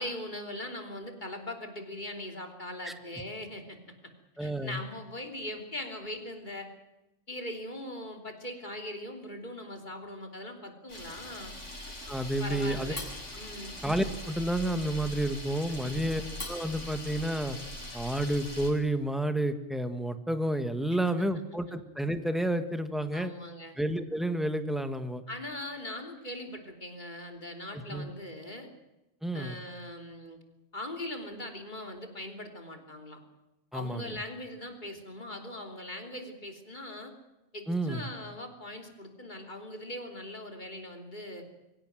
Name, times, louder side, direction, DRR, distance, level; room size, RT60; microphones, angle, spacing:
voice 1, 0.0-3.8 4.4-6.7 7.3-11.5 12.4-13.1 13.3-13.7 15.8-16.1 23.1-23.8 25.3-28.7 29.3-30.4 30.7-33.2 33.7-37.1 37.5-41.4, left 1 dB, 40° left, 3 dB, 3.3 m, -40 dB
voice 2, 4.4-4.8 12.1-12.9 13.8-16.2 16.5-17.6 17.9-23.3 23.7-25.2 27.7-28.1 29.2-29.6 33.7-34.2 37.7-38.1, right 1 dB, ahead, 8 dB, 1.6 m, -30 dB
Camera, 10.9-18.7, left 1 dB, 85° left, 6.2 m, -41 dB
24.5 x 16.0 x 9.2 m, 0.97 s
omnidirectional pair, 1.2 m